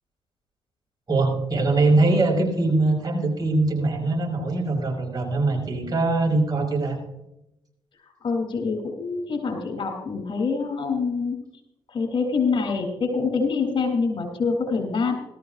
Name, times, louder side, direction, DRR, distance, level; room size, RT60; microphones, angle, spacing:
voice 1, 1.1-7.0, right 2 dB, 40° right, 1 dB, 5.6 m, -22 dB
voice 2, 8.2-11.4 11.9-15.1, left 4 dB, 55° left, 4 dB, 3.4 m, -25 dB
18.0 x 13.5 x 2.6 m, 0.87 s
supercardioid pair, 60°, 10 cm